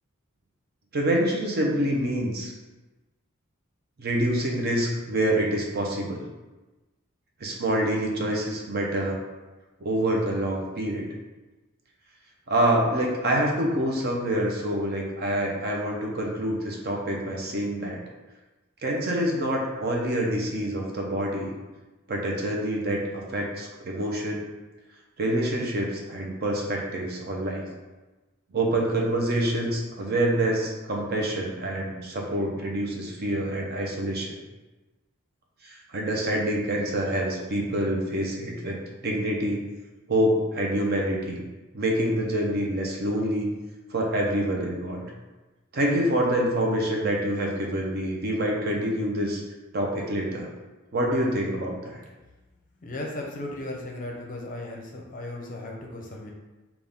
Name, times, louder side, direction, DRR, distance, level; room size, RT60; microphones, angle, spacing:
voice 1, 0.9-2.5 4.0-6.3 7.4-9.2 9.8-11.1 12.5-18.0 18.8-21.5 22.1-24.5 25.2-27.7 28.5-34.3 35.6-39.6 40.1-41.4 41.7-43.5 43.9-45.1 45.7-49.4 49.7-50.5 50.9-52.0, right 1 dB, 50° right, -1 dB, 0.6 m, -26 dB
voice 2, 52.8-56.3, left 1 dB, 40° left, -1 dB, 0.6 m, -36 dB
3.9 x 2.3 x 3.5 m, 1.2 s
head